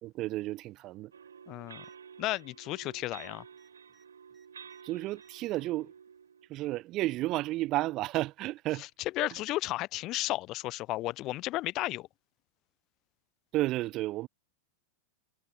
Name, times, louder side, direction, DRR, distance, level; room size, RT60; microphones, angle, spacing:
voice 1, 0.0-1.1 4.8-5.9 6.5-8.8 9.2-9.3 13.5-14.3, right 17 dB, 35° right, 0.4 m, -32 dB
sound 1, 1.1-6.5, right 7 dB, 70° right, 3.5 m, -51 dB
voice 2, 1.5-1.8 2.2-3.4 8.7-12.1, left 17 dB, 35° left, 0.5 m, -33 dB
sound 2, 1.8-2.0 2.2-2.4 2.7-4.8 5.2-5.7 6.7-7.4 8.4-8.5, right 5 dB, 15° right, 7.9 m, -68 dB
figure-of-eight pair, 90°, 0 cm